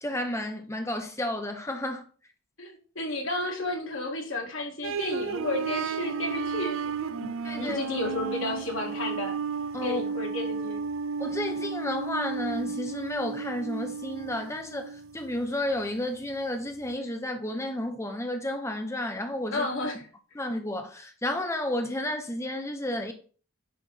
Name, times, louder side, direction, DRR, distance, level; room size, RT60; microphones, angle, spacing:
voice 1, 0.0-2.0 7.4-7.8 9.7-10.0 11.2-19.7 20.3-23.1, left 1 dB, 15° left, 1.0 m, -32 dB
voice 2, 2.6-7.3 7.6-9.4 9.8-10.8 19.5-20.1, left 1 dB, 65° left, 2.4 m, -32 dB
sound 1, 4.8-15.5, right 5 dB, 60° right, 0.5 m, -33 dB
10.5 x 3.5 x 5.6 m
head